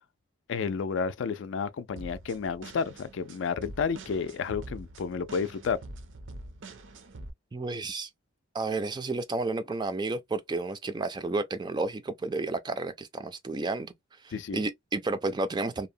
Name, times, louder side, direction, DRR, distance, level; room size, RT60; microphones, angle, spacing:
voice 1, 0.5-5.8 14.3-14.6, left 5 dB, 70° left, 0.3 m, -31 dB
sound 1, 2.0-7.3, right 2 dB, 70° right, 0.6 m, -45 dB
voice 2, 7.5-8.1 8.5-13.9 14.2-15.9, right 3 dB, 20° right, 0.3 m, -31 dB
2.7 x 2.1 x 2.6 m
head